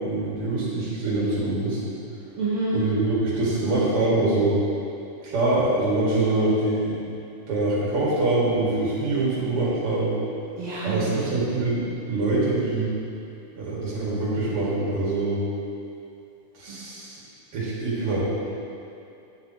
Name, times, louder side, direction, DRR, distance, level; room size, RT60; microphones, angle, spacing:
voice 1, 0.0-1.8 2.7-4.5 5.2-7.0 7.5-10.1 10.8-12.9 13.6-15.4 16.6-17.2 17.5-18.2, right 2 dB, 45° right, -8 dB, 2.6 m, -24 dB
voice 2, 2.4-2.8 10.6-11.3 16.7-16.8, right 3 dB, 65° right, -7 dB, 1.7 m, -28 dB
9.7 x 7.7 x 3.0 m, 2.7 s
omnidirectional pair, 3.8 m